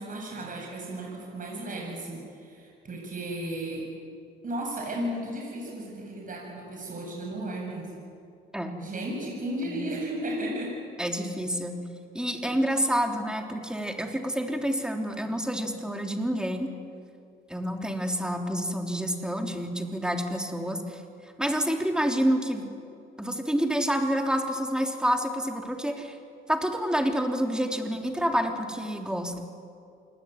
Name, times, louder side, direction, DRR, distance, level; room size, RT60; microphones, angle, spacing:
voice 1, 0.0-3.8 4.4-7.9 8.8-10.8 12.4-12.6, right 1 dB, 40° right, -1 dB, 7.9 m, -34 dB
voice 2, 11.0-11.8 12.1-16.7 17.5-21.0 21.4-22.7 23.2-26.2 26.5-29.4, equal, 5° right, 3 dB, 3.6 m, -28 dB
27.5 x 20.0 x 9.6 m, 2.4 s
cardioid pair, 90°, 20 cm